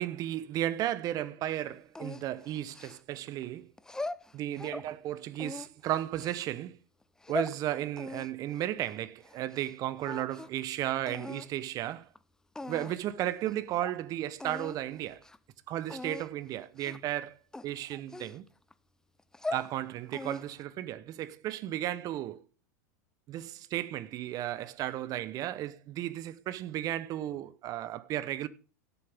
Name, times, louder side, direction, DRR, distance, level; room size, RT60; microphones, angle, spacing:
voice 1, 0.0-3.7 4.3-6.8 7.3-12.1 12.7-15.2 15.7-17.4 17.6-18.5 19.5-22.4 23.3-28.5, right 13 dB, 40° right, 0.9 m, -34 dB
sound 1, 2.0-3.3 3.8-4.9 5.4-6.4 7.0-7.6 8.0-9.7 10.0-10.6 11.1-11.5 12.2-12.3 12.6-13.1 13.5-13.6 13.8-14.0 14.4-14.8 15.1-15.4 15.9-16.3 16.8-17.1 17.5-18.7 19.2-19.7 20.1-20.6, left 2 dB, 5° left, 0.4 m, -40 dB
16.0 x 7.1 x 3.6 m
hypercardioid pair, 105°, 9 cm